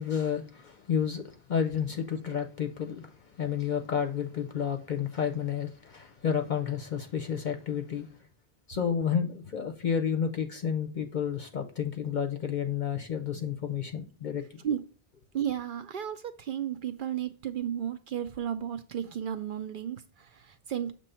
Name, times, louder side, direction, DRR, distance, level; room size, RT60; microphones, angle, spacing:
voice 1, 0.0-8.1 8.7-14.4, left 7 dB, 55° left, 0.7 m, -31 dB
voice 2, 15.3-20.9, right 9 dB, 60° right, 0.6 m, -33 dB
6.9 x 3.0 x 5.4 m
omnidirectional pair, 1.1 m